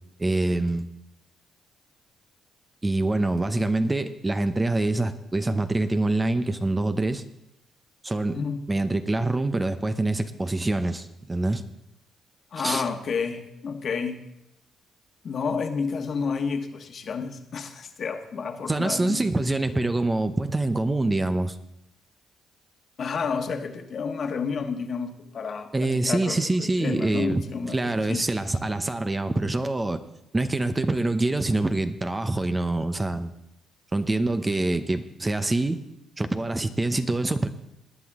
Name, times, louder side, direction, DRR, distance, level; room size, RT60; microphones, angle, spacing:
voice 1, 0.2-0.9 2.8-7.2 8.0-8.4 8.7-11.6 12.6-12.9 18.7-21.6 25.7-30.0 30.3-33.3 33.9-35.8 36.2-37.5, right 2 dB, 20° right, 10 dB, 0.7 m, -25 dB
voice 2, 8.3-8.6 12.5-14.2 15.2-19.2 23.0-28.2, left 5 dB, 55° left, 5 dB, 1.4 m, -30 dB
19.5 x 9.3 x 3.6 m, 0.85 s
cardioid pair, 90°, 0 cm